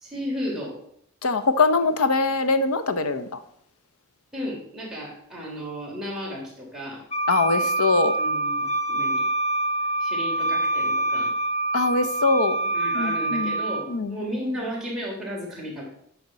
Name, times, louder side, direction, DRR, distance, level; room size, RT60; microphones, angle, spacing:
voice 1, 0.0-0.7 4.3-7.0 8.2-9.2 10.0-11.3 12.7-15.8, equal, ahead, -5 dB, 3.1 m, -33 dB
voice 2, 1.2-3.4 7.3-8.2 11.7-12.6 12.9-13.6 13.9-14.2, left 3 dB, 80° left, 9 dB, 0.8 m, -22 dB
Wind instrument woodwind instrument, 7.1-13.9, right 2 dB, 30° left, 1.5 m, -25 dB
9.1 x 5.9 x 5.5 m, 0.69 s
head